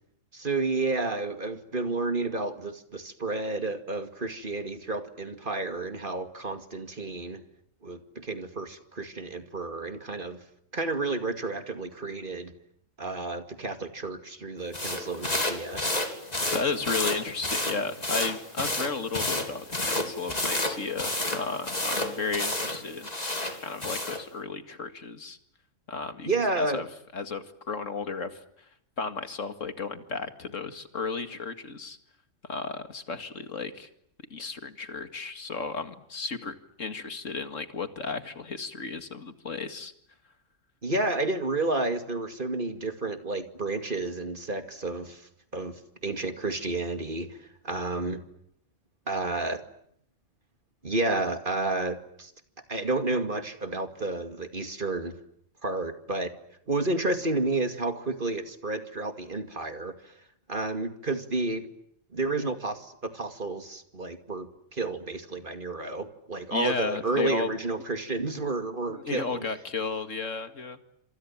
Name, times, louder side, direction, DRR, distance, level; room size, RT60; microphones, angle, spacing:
voice 1, 0.3-7.4 7.8-10.4 10.7-12.5 13.0-15.8 26.3-26.8 40.8-45.2 45.5-47.4 47.6-48.2 49.1-49.6 50.8-52.3 52.7-55.2 55.6-56.3 56.7-60.0 60.5-61.7 62.1-69.5, right 2 dB, 40° right, 8 dB, 2.5 m, -31 dB
sound 1, 14.7-24.2, left 1 dB, 30° left, 3.5 m, -31 dB
voice 2, 16.5-23.1 23.6-25.4 25.9-26.3 26.6-26.9 27.1-28.4 29.0-32.0 32.4-33.9 34.3-39.9 66.5-67.5 68.9-70.8, left 4 dB, 75° left, 9 dB, 2.5 m, -33 dB
28.5 x 27.0 x 7.5 m, 0.72 s
omnidirectional pair, 1.3 m